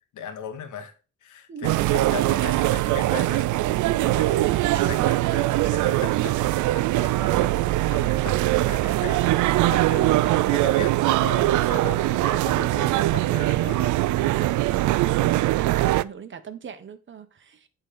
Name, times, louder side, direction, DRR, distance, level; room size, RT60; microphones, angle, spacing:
voice 1, 0.1-0.9 1.2-3.5 4.0-7.6 7.9-14.0 14.2-14.5, left 7 dB, 75° left, 1.6 m, -38 dB
voice 2, 1.5-2.5 4.3-4.6 14.7-17.7, right 7 dB, 40° right, 1.2 m, -40 dB
sound 1, 1.6-16.0, right 16 dB, 75° right, 0.5 m, -22 dB
8.9 x 4.0 x 5.1 m
cardioid pair, 90°, 30 cm